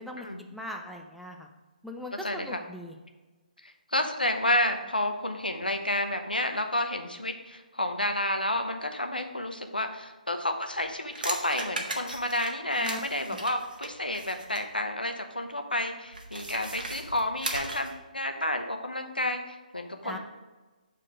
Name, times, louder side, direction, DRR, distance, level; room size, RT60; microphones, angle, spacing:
voice 1, 0.5-1.5 1.8-2.9 12.8-13.0 20.0-20.2, left 1 dB, ahead, 1 dB, 0.4 m, -40 dB
voice 2, 2.2-2.6 3.9-20.2, left 1 dB, 90° left, 5 dB, 0.9 m, -30 dB
sound 1, 10.7-14.7 16.1-18.0, right 2 dB, 75° right, 1.4 m, -37 dB
7.1 x 4.4 x 4.9 m, 1.2 s
figure-of-eight pair, 140°, 5 cm